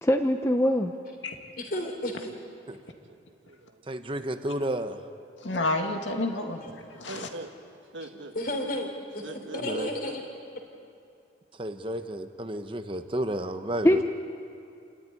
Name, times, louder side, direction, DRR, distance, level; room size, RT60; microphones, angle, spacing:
voice 1, 0.0-0.9 13.8-14.0, equal, 15° left, 5 dB, 0.7 m, -22 dB
voice 2, 1.6-2.3 6.6-6.7 8.3-8.9 9.1-9.2 9.5-10.2, left 1 dB, 50° left, 3 dB, 3.5 m, -32 dB
voice 3, 2.8-4.0 7.0-7.5 7.9-8.4 9.2-10.2 13.8-14.0, right 2 dB, 85° right, 5 dB, 1.8 m, -42 dB
voice 4, 3.9-5.0 9.6-9.9 11.5-14.0, right 1 dB, 25° right, 8 dB, 0.9 m, -32 dB
voice 5, 5.4-7.3, left 2 dB, 85° left, 3 dB, 2.2 m, -30 dB
28.5 x 13.5 x 9.8 m, 2.6 s
head